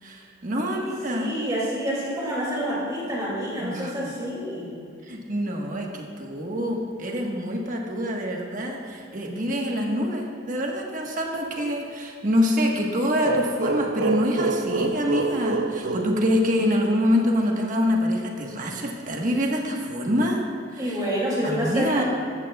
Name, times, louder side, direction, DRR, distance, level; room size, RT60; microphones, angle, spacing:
voice 1, 0.0-1.4 3.6-3.9 5.0-20.4 20.7-21.0 21.4-22.0, equal, 45° right, 0 dB, 1.3 m, -25 dB
voice 2, 0.7-4.7 20.8-22.0, equal, 20° right, -6 dB, 2.4 m, -28 dB
sound 1, 13.2-16.9, right 3 dB, 70° right, 0.5 m, -27 dB
14.5 x 12.5 x 2.3 m, 2.2 s
head